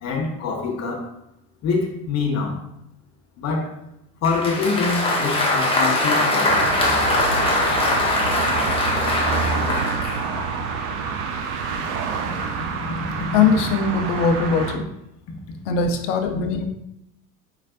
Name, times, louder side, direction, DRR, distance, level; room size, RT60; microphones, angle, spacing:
voice 1, 0.0-1.1 1.6-2.6 3.4-3.7 4.2-6.6, left 4 dB, 35° left, 0 dB, 1.0 m, -24 dB
Applause, 4.2-10.3, left 2 dB, 10° left, 0.5 m, -22 dB
sound 1, 6.5-14.8, right 5 dB, 35° right, 0.4 m, -27 dB
voice 2, 13.3-14.8 15.7-16.7, left 5 dB, 50° left, 6 dB, 0.7 m, -20 dB
4.7 x 3.1 x 2.4 m, 0.80 s
figure-of-eight pair, 75°, 47 cm